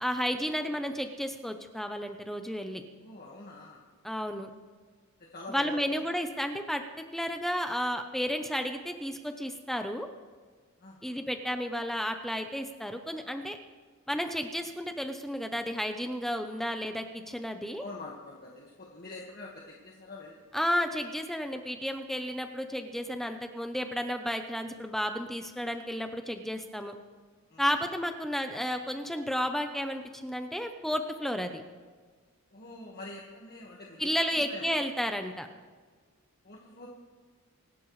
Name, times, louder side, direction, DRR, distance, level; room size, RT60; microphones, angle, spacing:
voice 1, 0.0-2.8 4.0-4.5 5.5-6.8 7.1-10.1 11.0-13.6 14.1-17.8 20.5-27.0 27.6-31.6 34.0-35.5, equal, ahead, 6 dB, 0.7 m, -32 dB
voice 2, 3.0-3.9 5.3-6.0 10.8-11.5 17.8-20.4 27.5-27.6 32.5-34.7 36.4-36.9, left 2 dB, 45° left, -3 dB, 1.6 m, -45 dB
25.5 x 12.0 x 3.2 m, 1.5 s
head